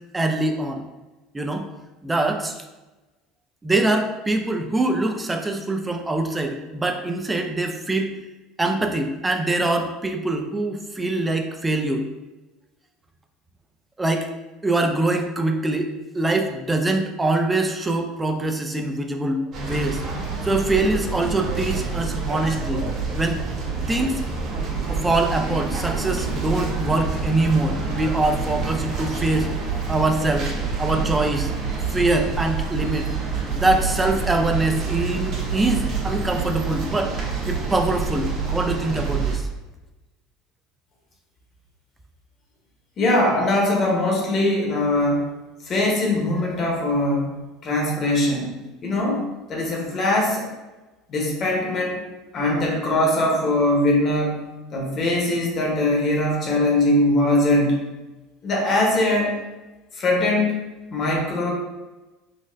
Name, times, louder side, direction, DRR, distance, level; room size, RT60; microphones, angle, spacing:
voice 1, 0.1-0.8 1.3-1.7 2.0-2.6 3.6-8.2 8.6-12.1 14.0-14.3 14.6-20.0 20.4-22.8 23.1-23.4 23.9-24.2 24.9-29.5 29.9-30.5 30.8-31.5 31.9-33.1 33.5-37.2 37.5-39.5, right 2 dB, 15° right, 4 dB, 0.4 m, -23 dB
sound 1, 19.5-39.4, right 4 dB, 50° right, 0.7 m, -27 dB
voice 2, 43.0-45.3 45.6-47.3 47.6-48.6 48.8-50.5 51.1-52.0 52.3-57.8 58.4-59.3 60.0-60.5 60.9-61.5, left 1 dB, 40° left, -1 dB, 0.9 m, -21 dB
3.9 x 2.0 x 2.5 m, 1.1 s
supercardioid pair, 110°, 0 cm